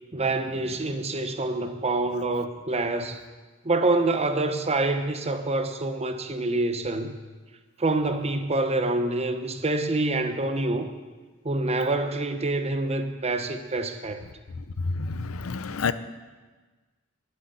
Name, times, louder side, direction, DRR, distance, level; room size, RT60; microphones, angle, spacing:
voice 1, 0.1-3.2 3.6-7.1 7.8-10.9 11.4-14.2, right 2 dB, 30° right, 1.0 m, -26 dB
voice 2, 14.6-15.9, left 4 dB, 90° left, 0.6 m, -29 dB
12.0 x 7.9 x 9.8 m
head